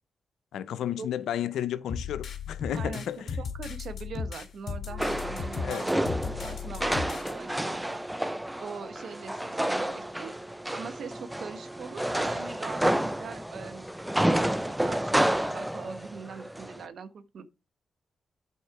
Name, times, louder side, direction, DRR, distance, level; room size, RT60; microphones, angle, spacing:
voice 1, 0.5-3.4 5.6-5.9, left 10 dB, 85° left, 0.6 m, -32 dB
sound 1, 1.9-7.3, left 6 dB, 65° left, 2.9 m, -36 dB
voice 2, 2.7-3.1 3.4-8.0 8.6-10.3 10.7-13.8 14.1-17.4, right 5 dB, 70° right, 1.0 m, -42 dB
Wind instrument woodwind instrument, 4.9-12.8, right 2 dB, 50° right, 2.2 m, -48 dB
sound 2, 5.0-16.8, right 1 dB, 10° right, 0.6 m, -30 dB
8.5 x 4.3 x 4.7 m
cardioid pair, 60°, 0 cm